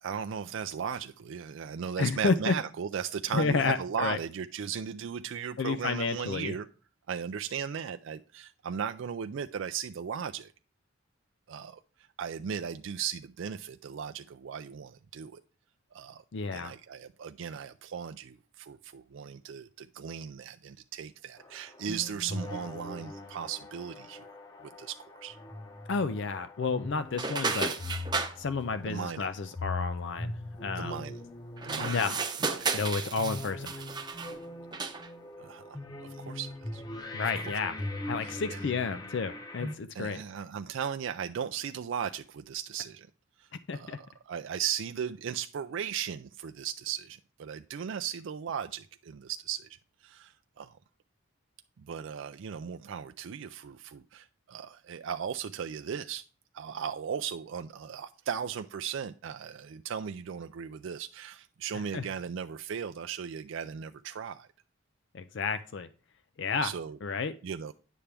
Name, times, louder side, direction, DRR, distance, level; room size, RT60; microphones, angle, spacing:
voice 1, 0.0-6.7 7.1-10.5 11.5-11.8 12.2-15.4 15.9-16.2 16.5-24.2 24.6-25.4 28.9-29.3 30.8-31.2 31.6-32.0 32.5-32.7 35.4-35.6 36.0-36.8 38.2-38.6 39.9-43.1 43.4-43.5 43.7-49.7 50.0-50.7 51.9-56.2 56.5-64.5 66.6-67.0 67.4-67.7, right 7 dB, 65° right, 0.4 m, -37 dB
voice 2, 2.0-2.5 3.3-4.2 5.6-6.6 16.3-16.7 25.9-27.7 28.4-30.3 30.6-31.0 31.8-32.2 32.7-33.8 37.1-37.8 38.1-40.2 43.7-44.0 61.9-62.1 65.1-65.9 66.4-66.7 67.0-67.3, left 4 dB, 55° left, 0.4 m, -31 dB
sound 1, 21.4-39.7, left 2 dB, 20° left, 0.8 m, -41 dB
sound 2, 27.1-28.3 31.6-34.4 34.7-35.1, right 4 dB, 20° right, 0.7 m, -33 dB
9.9 x 6.9 x 3.4 m
head